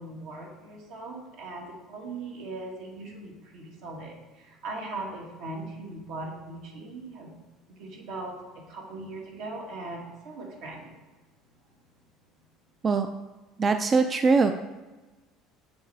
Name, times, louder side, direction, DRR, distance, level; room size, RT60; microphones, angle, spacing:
voice 1, 0.0-7.3 7.7-10.9, right 2 dB, 75° right, -1 dB, 1.6 m, -39 dB
voice 2, 13.6-14.5, right 4 dB, 30° right, 7 dB, 0.3 m, -22 dB
7.0 x 3.2 x 4.7 m, 1.2 s
supercardioid pair, 115°, 0 cm